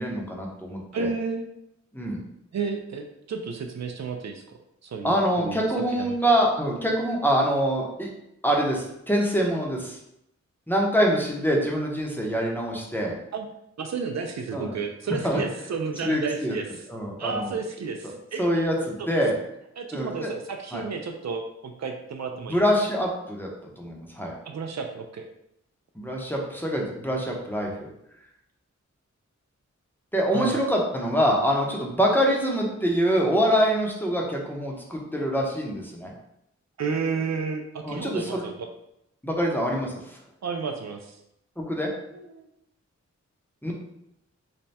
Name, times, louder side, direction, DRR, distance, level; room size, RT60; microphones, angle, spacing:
voice 1, 0.0-1.1 1.9-2.2 5.0-8.1 8.4-10.0 10.7-13.1 14.5-14.7 15.2-15.4 16.0-16.6 16.9-17.5 18.4-19.3 19.9-20.3 20.7-20.8 22.4-23.5 23.8-24.4 25.9-27.9 30.1-36.1 37.8-38.4 39.2-40.2 41.6-41.9 43.6-43.7, equal, 5° left, -1 dB, 0.8 m, -25 dB
voice 2, 0.9-1.4 2.5-5.6 5.9-6.3 13.3-13.5 13.8-16.7 17.2-18.6 19.0-19.1 19.8-22.6 24.5-25.3 30.3-30.6 36.8-38.7 40.4-41.2 42.1-42.5, right 5 dB, 65° right, 4 dB, 0.4 m, -32 dB
3.3 x 2.2 x 4.1 m, 0.79 s
wide cardioid pair, 85°, 30 cm